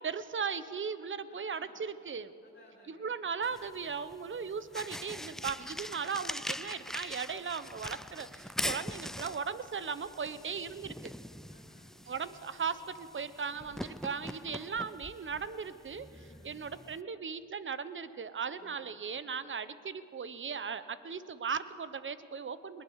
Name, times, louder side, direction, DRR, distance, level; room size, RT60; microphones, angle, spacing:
voice 1, 0.0-2.3 2.9-11.1 12.1-22.8, right 6 dB, 35° right, 14 dB, 1.2 m, -37 dB
voice 2, 1.3-1.8 2.4-3.2 5.5-5.9 10.2-11.1 11.4-12.1 13.5-13.9 16.0-16.7 18.6-18.9, left 2 dB, 35° left, -7 dB, 7.3 m, -61 dB
sound 1, 3.4-17.0, equal, ahead, 0.4 m, -43 dB
21.5 x 19.5 x 6.6 m, 2.4 s
supercardioid pair, 70°, 34 cm